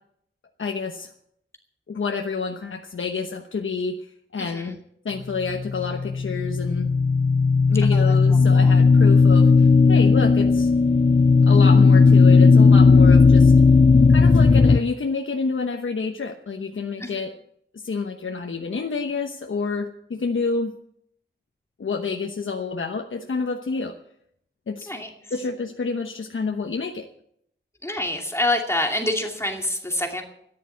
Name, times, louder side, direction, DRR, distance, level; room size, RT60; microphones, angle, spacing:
voice 1, 0.6-1.1 1.9-4.8 5.0-6.9 7.7-10.7 11.4-13.5 14.1-17.3 17.7-20.7 21.8-23.9 24.7-24.9 25.3-27.1, left 4 dB, 70° left, 3 dB, 1.1 m, -28 dB
voice 2, 4.4-4.8 7.9-8.1 8.5-8.8 17.0-17.2 24.9-25.1 27.8-30.2, left 1 dB, 15° left, 2 dB, 2.5 m, -27 dB
sound 1, 5.4-14.8, left 4 dB, 30° left, 0.5 m, -15 dB
13.0 x 11.0 x 7.7 m, 0.71 s
wide cardioid pair, 70°, 21 cm